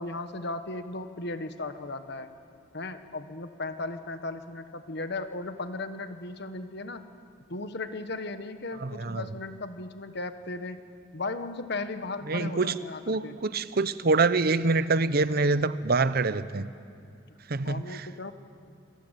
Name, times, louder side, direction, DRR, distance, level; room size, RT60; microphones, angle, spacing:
voice 1, 0.0-2.3 2.7-7.0 7.5-10.8 11.1-13.4 17.6-18.3, left 2 dB, 60° left, 9 dB, 1.4 m, -36 dB
voice 2, 8.8-9.2 12.3-12.8 13.1-16.7 17.5-18.1, right 3 dB, 50° right, 14 dB, 0.8 m, -25 dB
27.0 x 22.5 x 9.2 m, 2.5 s
head